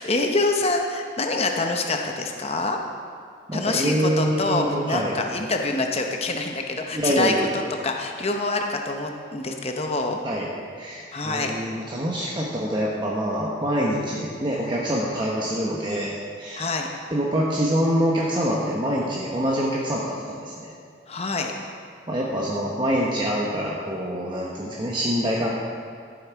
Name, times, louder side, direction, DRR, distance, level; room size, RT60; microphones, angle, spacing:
voice 1, 0.0-2.8 3.5-7.3 7.8-10.2 11.1-11.5 16.5-16.9 21.1-21.5, left 3 dB, 30° left, 3 dB, 0.8 m, -26 dB
voice 2, 3.5-5.1 6.9-7.5 10.2-10.5 10.8-16.1 16.4-16.7 17.1-20.7 22.1-25.5, equal, 25° right, -4 dB, 1.0 m, -25 dB
13.5 x 7.7 x 4.7 m, 2.2 s
head